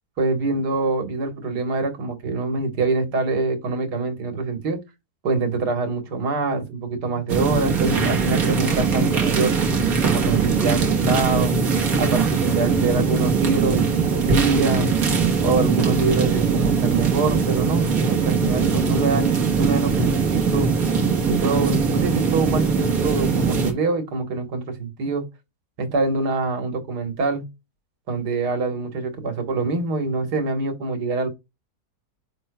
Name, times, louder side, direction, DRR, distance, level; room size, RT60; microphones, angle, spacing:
voice 1, 0.2-4.8 5.2-9.5 10.0-11.5 12.0-14.9 15.4-20.7 21.2-25.3 25.8-27.5 28.1-31.3, right 3 dB, 85° right, 2.0 m, -25 dB
sound 1, 7.3-23.7, right 5 dB, 65° right, 1.8 m, -21 dB
9.7 x 5.3 x 2.3 m
omnidirectional pair, 1.7 m